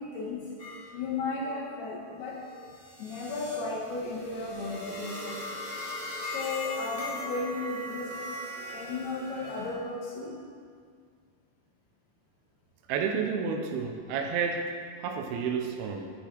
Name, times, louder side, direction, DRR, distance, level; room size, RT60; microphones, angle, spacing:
voice 1, 0.0-2.4 3.0-5.4 6.2-8.2 8.7-10.3, left 3 dB, 80° left, -4 dB, 3.0 m, -35 dB
sound 1, 0.6-0.8 1.3-9.8, left 1 dB, 25° left, 0.9 m, -40 dB
voice 2, 12.9-14.7 15.0-16.1, right 6 dB, 85° right, 4 dB, 2.5 m, -30 dB
9.7 x 7.0 x 4.5 m, 2.1 s
omnidirectional pair, 4.5 m